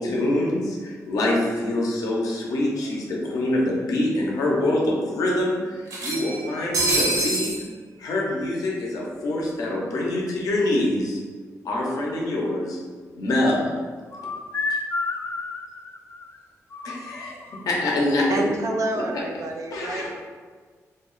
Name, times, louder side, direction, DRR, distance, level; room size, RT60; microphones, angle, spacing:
voice 1, 0.0-7.5 8.0-11.2 11.6-12.8 13.1-13.8 16.8-17.4 17.6-18.4 18.9-19.0 19.7-20.1, left 1 dB, 80° left, -2 dB, 0.7 m, -25 dB
sound 1, 2.5-2.6 2.9-3.0 4.0-4.1 4.5-4.6 5.9-7.6, right 2 dB, 80° right, 0.8 m, -25 dB
voice 2, 14.1-16.4 16.7-17.6, left 3 dB, 40° left, 4 dB, 0.4 m, -31 dB
voice 3, 18.3-20.1, right 2 dB, 60° right, 3 dB, 0.4 m, -28 dB
3.4 x 2.1 x 3.8 m, 1.5 s
cardioid pair, 85°, 6 cm